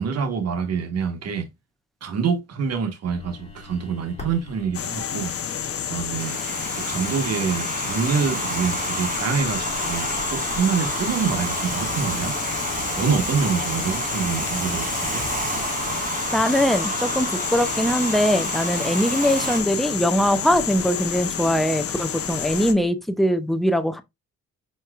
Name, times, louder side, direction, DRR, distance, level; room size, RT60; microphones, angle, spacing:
voice 1, 0.0-1.5 2.0-5.3 5.9-6.4 6.9-12.4 13.0-15.2, right 6 dB, 55° right, 1.3 m, -26 dB
sound 1, 3.1-22.9, left 2 dB, 20° left, 3.1 m, -45 dB
sound 2, 4.7-22.7, left 8 dB, 50° left, 0.8 m, -30 dB
Domestic sounds home sounds, 6.2-19.6, right 3 dB, 25° right, 1.6 m, -30 dB
voice 2, 16.3-24.0, equal, ahead, 0.5 m, -21 dB
4.5 x 4.4 x 2.4 m
cardioid pair, 90°, 30 cm